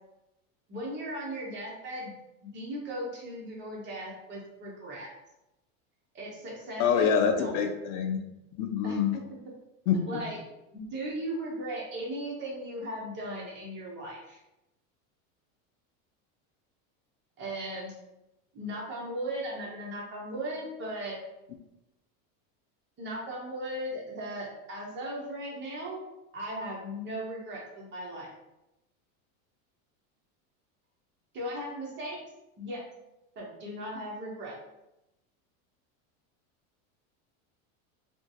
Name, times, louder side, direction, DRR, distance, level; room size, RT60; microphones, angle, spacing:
voice 1, 0.7-2.1 2.4-5.1 6.1-7.6 8.8-9.2 10.1-10.4 10.7-14.4 17.4-17.9 18.5-21.2 23.0-26.0 26.3-28.3 31.3-32.2 32.6-32.8 33.4-34.6, right 1 dB, 25° right, -3 dB, 0.7 m, -37 dB
voice 2, 6.8-8.2 8.6-9.2 9.9-10.2, left 7 dB, 70° left, 6 dB, 0.5 m, -26 dB
2.9 x 2.4 x 2.6 m, 0.93 s
supercardioid pair, 150°, 41 cm